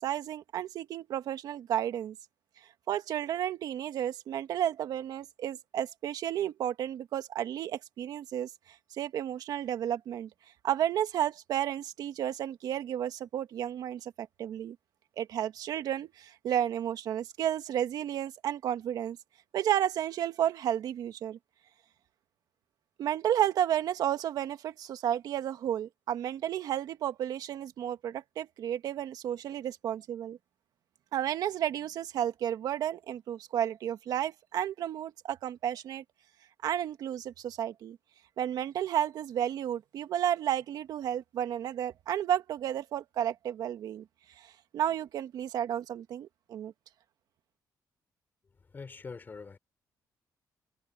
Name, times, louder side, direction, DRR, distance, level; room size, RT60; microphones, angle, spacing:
voice 1, 0.0-2.1 2.9-8.5 8.9-10.3 10.6-14.8 15.2-19.2 19.5-21.4 23.0-30.4 31.1-36.0 36.6-38.0 38.4-44.0 44.4-46.7, right 10 dB, 75° right, 1.6 m, -32 dB
voice 2, 48.7-49.6, left 4 dB, 30° left, 3.2 m, -43 dB
cardioid pair, 125°, 7 cm